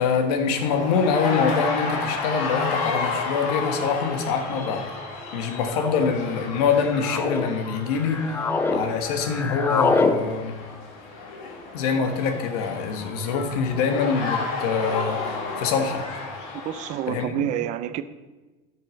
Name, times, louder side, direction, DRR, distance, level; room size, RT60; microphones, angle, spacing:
voice 1, 0.0-4.9 5.3-8.4 8.7-10.6 11.7-16.1 17.1-17.5, left 5 dB, 90° left, 1.6 m, -25 dB
sound 1, 0.5-17.1, left 4 dB, 60° left, 2.6 m, -32 dB
sound 2, 2.1-2.2 3.2-3.5 4.4-4.8 5.7-6.1 6.7-7.5 7.9-8.8 9.1-10.2, left 4 dB, 10° left, 0.4 m, -26 dB
voice 2, 16.6-18.0, right 12 dB, 40° right, 0.5 m, -28 dB
13.5 x 6.6 x 5.3 m
cardioid pair, 165°, 19 cm